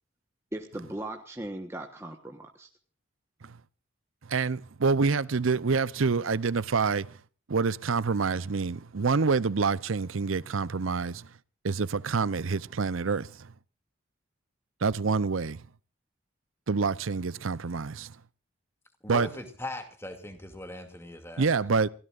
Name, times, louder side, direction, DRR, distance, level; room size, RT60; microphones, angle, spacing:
voice 1, 0.5-2.7 21.6-21.7, right 1 dB, 15° right, 1.2 m, -38 dB
voice 2, 4.3-7.1 7.5-11.3 11.6-13.3 14.8-15.6 16.7-18.1 19.1-19.3 21.4-21.9, right 4 dB, 85° right, 0.7 m, -27 dB
voice 3, 19.0-21.5, left 1 dB, 10° left, 2.5 m, -39 dB
28.5 x 17.0 x 2.5 m
head